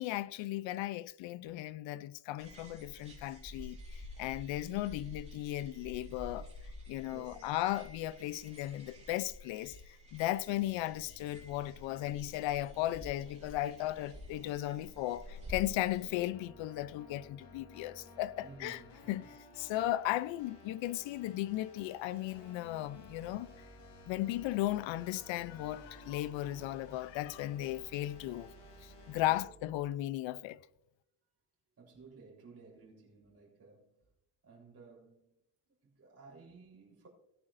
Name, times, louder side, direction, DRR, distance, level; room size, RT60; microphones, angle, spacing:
voice 1, 0.0-3.8 4.2-6.5 6.9-9.8 10.1-18.8 19.1-19.3 19.7-23.5 24.0-28.5 28.8-30.6, left 15 dB, 80° left, 0.7 m, -36 dB
sound 1, 2.4-16.2, left 1 dB, 15° right, 3.5 m, -50 dB
voice 2, 7.1-7.6 18.4-19.3 26.0-26.1 26.8-26.9 29.1-29.4 31.8-34.0 34.4-35.4 35.7-37.1, right 4 dB, 30° right, 3.9 m, -56 dB
sound 2, 10.6-29.5, left 3 dB, 60° left, 3.3 m, -57 dB
sound 3, 22.8-30.0, right 5 dB, 55° right, 3.3 m, -59 dB
17.5 x 9.9 x 2.6 m
cardioid pair, 150°, 45 cm